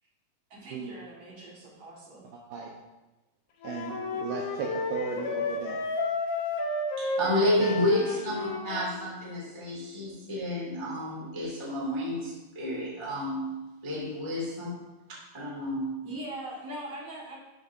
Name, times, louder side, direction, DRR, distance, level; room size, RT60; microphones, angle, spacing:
voice 1, 0.5-2.3 16.0-17.4, right 1 dB, 55° right, -5 dB, 1.9 m, -41 dB
voice 2, 2.3-2.7 3.6-5.8 7.6-7.8, right 5 dB, 80° right, -1 dB, 2.2 m, -35 dB
Wind instrument woodwind instrument, 3.6-9.0, left 3 dB, 80° left, 1.8 m, -32 dB
voice 3, 7.0-14.8 15.3-16.0, left 1 dB, 30° right, -6 dB, 0.5 m, -30 dB
12.5 x 5.2 x 2.6 m, 1.1 s
omnidirectional pair, 4.8 m